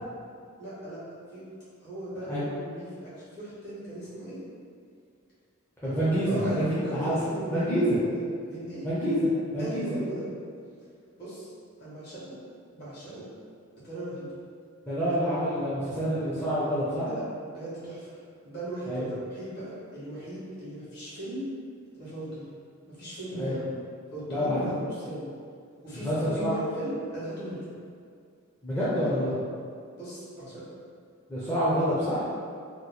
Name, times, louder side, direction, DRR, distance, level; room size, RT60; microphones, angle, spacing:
voice 1, 0.6-1.0 1.3-1.4 1.8-4.4 5.8-8.9 9.6-10.3 11.2-11.5 11.8-12.4 12.7-13.3 13.8-14.3 15.0-15.2 17.0-17.2 17.5-18.1 18.4-21.5 22.0-22.5 22.8-23.5 24.1-25.3 25.8-27.7 30.0-30.7, right 1 dB, 50° left, -10 dB, 1.4 m, -38 dB
voice 2, 5.8-7.2 7.5-8.0 8.8-10.0 14.9-17.1 18.9-19.1 23.3-23.6 24.3-24.7 25.9-26.5 28.6-29.3 31.3-32.2, equal, 10° left, -12 dB, 0.5 m, -27 dB
2.9 x 2.2 x 4.1 m, 2.2 s
head